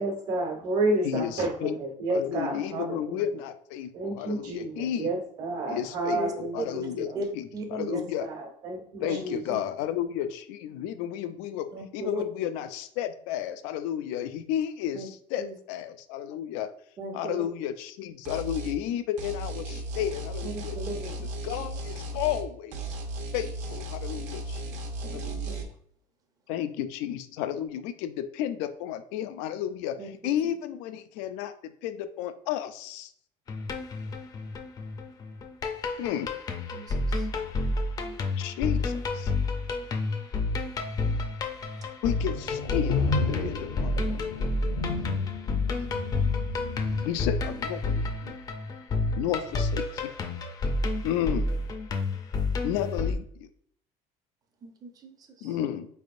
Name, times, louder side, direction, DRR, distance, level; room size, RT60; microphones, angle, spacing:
voice 1, 0.0-3.1 3.9-7.2 7.9-9.4, right 2 dB, 70° right, -2 dB, 1.2 m, -30 dB
voice 2, 1.0-1.8 2.1-5.1 5.7-7.1 7.3-8.3 9.0-11.7 11.9-16.7 17.1-21.1 21.4-22.9 23.3-24.6 25.1-25.6 26.5-30.0 30.2-33.1 36.0-36.3 38.4-39.3 42.0-43.1 43.4-44.1 47.1-48.3 49.2-50.1 51.0-51.5 52.6-53.5 55.4-55.9, left 10 dB, 85° left, 10 dB, 0.4 m, -32 dB
voice 3, 7.5-7.9 9.0-9.2 9.5-9.6 11.7-12.2 14.9-15.1 15.4-15.5 17.0-17.4 20.4-21.3 25.0-25.7 30.0-30.5 36.7-37.3 54.6-55.5, right 1 dB, 25° right, 5 dB, 0.6 m, -37 dB
sound 1, 18.3-18.8 19.2-22.5 22.7-25.6, right 1 dB, 55° right, 0.8 m, -35 dB
sound 2, 33.5-53.1, left 3 dB, 25° left, 0.4 m, -30 dB
sound 3, 42.2-47.5, left 3 dB, 70° left, 0.8 m, -32 dB
4.3 x 3.4 x 2.5 m, 0.63 s
cardioid pair, 155°, 15 cm